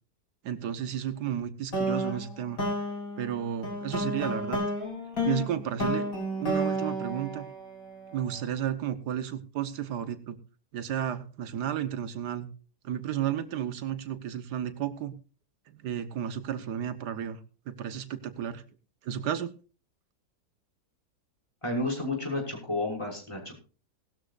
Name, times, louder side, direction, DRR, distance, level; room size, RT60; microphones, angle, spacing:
voice 1, 0.4-2.6 3.2-4.6 5.2-6.0 6.4-7.5 8.1-10.4 10.7-12.5 12.8-15.1 15.7-17.4 17.7-18.6 19.0-19.5, right 10 dB, 90° right, 11 dB, 1.6 m, -32 dB
sound 1, 1.7-8.1, equal, 60° left, 4.1 m, -31 dB
voice 2, 21.6-23.6, left 2 dB, 15° left, -1 dB, 5.9 m, -31 dB
19.0 x 13.0 x 2.5 m, 0.37 s
omnidirectional pair, 1.7 m